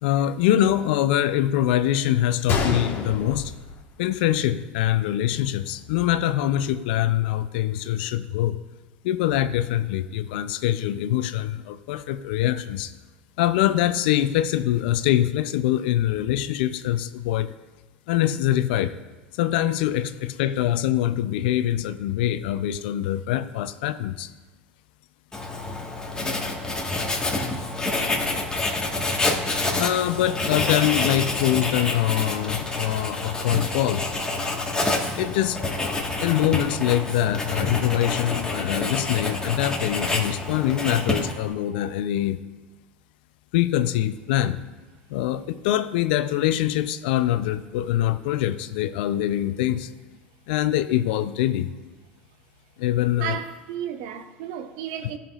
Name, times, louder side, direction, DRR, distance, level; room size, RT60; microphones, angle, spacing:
voice 1, 0.0-3.5 4.0-8.6 9.0-12.9 13.4-17.5 18.1-19.0 19.3-24.3 29.7-34.0 35.2-35.9 36.2-42.4 43.5-44.6 45.1-49.9 50.5-51.7 52.8-53.4, left 12 dB, 70° left, 0.5 m, -24 dB
Gunshot gunfire, 2.5-4.5 4.8-4.9 5.6-5.8, left 3 dB, 40° left, 1.4 m, -29 dB
Writing, 25.3-41.5, left 2 dB, 15° left, 1.5 m, -27 dB
voice 2, 53.2-55.2, right 9 dB, 65° right, 0.7 m, -33 dB
15.0 x 5.8 x 2.4 m
hypercardioid pair, 80°, 6 cm